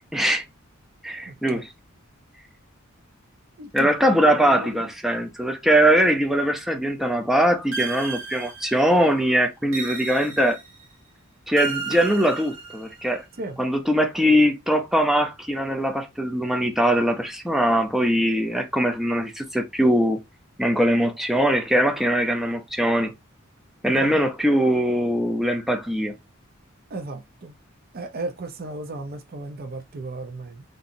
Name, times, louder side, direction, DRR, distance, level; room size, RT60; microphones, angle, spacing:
voice 1, 0.1-0.4 1.0-1.7 3.7-10.6 11.5-13.2 13.6-20.2 20.6-23.1 23.8-26.1, equal, ahead, 0.6 m, -21 dB
voice 2, 1.3-1.6 3.6-4.9 13.4-13.6 23.9-24.2 26.9-27.5 27.9-30.6, right 2 dB, 45° right, 0.5 m, -35 dB
sound 1, 7.7-9.1 9.7-10.9 11.6-13.1, right 5 dB, 75° right, 1.5 m, -33 dB
3.9 x 2.5 x 2.6 m
head